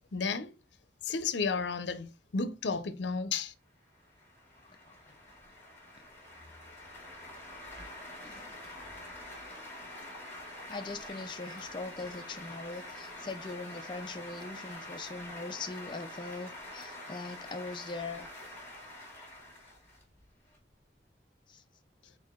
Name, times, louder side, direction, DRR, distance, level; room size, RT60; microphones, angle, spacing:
voice 1, 0.1-0.5 1.0-3.5, left 5 dB, 90° left, 0.6 m, -32 dB
sound 1, 3.9-20.6, left 1 dB, 10° left, 2.2 m, -46 dB
voice 2, 4.6-5.0 8.2-8.7 10.7-18.3 21.5-21.6, left 3 dB, 25° left, 0.4 m, -41 dB
4.6 x 4.3 x 2.4 m
head